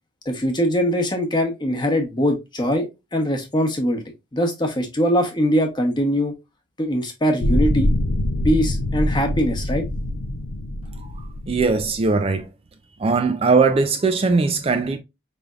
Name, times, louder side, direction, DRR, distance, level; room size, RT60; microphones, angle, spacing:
voice 1, 0.3-4.0 4.3-6.3 6.8-7.9 8.4-9.8, equal, 20° left, 0.9 m, -22 dB
sound 1, 7.4-12.3, left 1 dB, 80° left, 0.6 m, -24 dB
voice 2, 11.0-12.5 13.0-15.0, right 4 dB, 30° right, 0.4 m, -20 dB
5.0 x 3.3 x 2.3 m
head